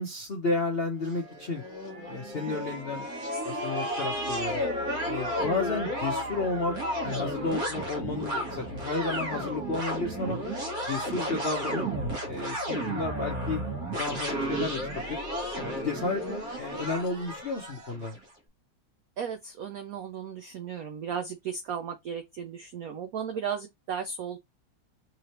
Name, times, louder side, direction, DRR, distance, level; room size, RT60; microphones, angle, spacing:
voice 1, 0.0-1.6 2.1-3.1 3.4-4.6 5.0-6.8 7.0-10.4 10.9-11.9 12.3-13.6 14.0-15.2 15.5-18.2, left 3 dB, 60° left, 0.6 m, -32 dB
sound 1, 1.1-18.2, equal, 50° right, 1.4 m, -33 dB
voice 2, 19.2-24.4, right 7 dB, 80° right, 0.7 m, -35 dB
3.6 x 3.3 x 2.8 m
omnidirectional pair, 2.2 m